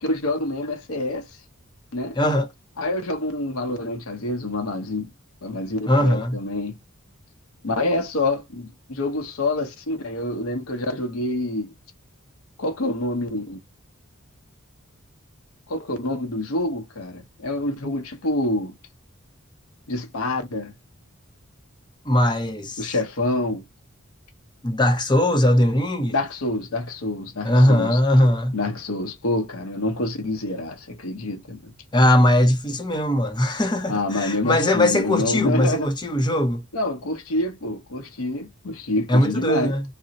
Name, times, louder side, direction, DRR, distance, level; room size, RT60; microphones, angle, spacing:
voice 1, 0.0-1.3 1.9-2.2 2.8-5.1 5.4-6.8 7.6-11.7 12.6-13.6 15.7-18.7 19.9-20.7 22.8-23.6 26.1-28.0 28.5-31.7 33.9-35.9 36.7-39.7, left 2 dB, 75° left, 0.7 m, -27 dB
voice 2, 2.2-2.5 5.9-6.4 22.0-22.9 24.6-26.1 27.4-28.6 31.9-36.6 39.1-39.8, left 1 dB, 20° left, 0.7 m, -20 dB
2.5 x 2.0 x 3.9 m
head